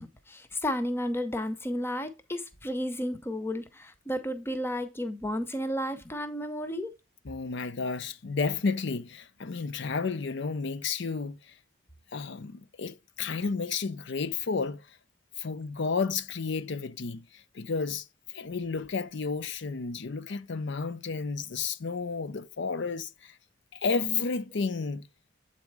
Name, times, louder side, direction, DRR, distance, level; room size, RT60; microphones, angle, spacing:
voice 1, 0.0-6.9, equal, 10° left, 0.7 m, -32 dB
voice 2, 7.2-11.5 12.1-14.8 15.4-23.3 23.7-25.1, left 4 dB, 60° left, 0.6 m, -32 dB
8.0 x 4.2 x 4.7 m
head